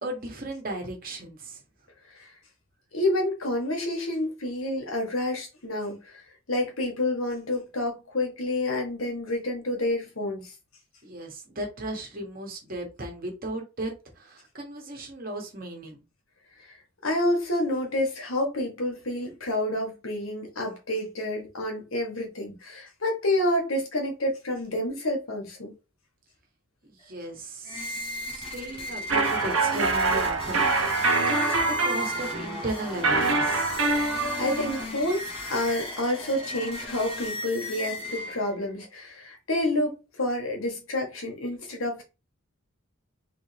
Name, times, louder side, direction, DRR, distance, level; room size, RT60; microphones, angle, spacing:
voice 1, 0.0-1.6 11.0-16.0 27.0-33.9, right 1 dB, 45° right, 1.3 m, -36 dB
voice 2, 2.9-6.2 6.5-10.5 17.0-25.7 34.4-42.0, left 1 dB, 85° left, 1.7 m, -29 dB
sound 1, 27.6-38.7, left 1 dB, 25° left, 1.1 m, -36 dB
sound 2, 29.1-34.8, right 3 dB, 75° right, 0.9 m, -25 dB
3.6 x 3.5 x 3.3 m
head